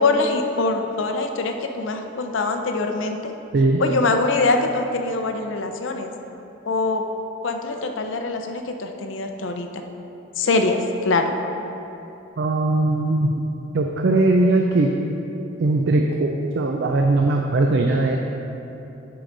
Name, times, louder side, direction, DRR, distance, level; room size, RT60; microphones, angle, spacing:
voice 1, 0.0-3.3 3.8-6.1 6.7-7.1 7.4-9.9 10.4-11.3, left 3 dB, 75° left, 5 dB, 0.6 m, -23 dB
voice 2, 12.4-13.3 13.7-14.9 15.6-16.3 16.5-18.2, right 2 dB, 60° right, 2 dB, 0.4 m, -19 dB
10.0 x 4.8 x 3.9 m, 2.9 s
head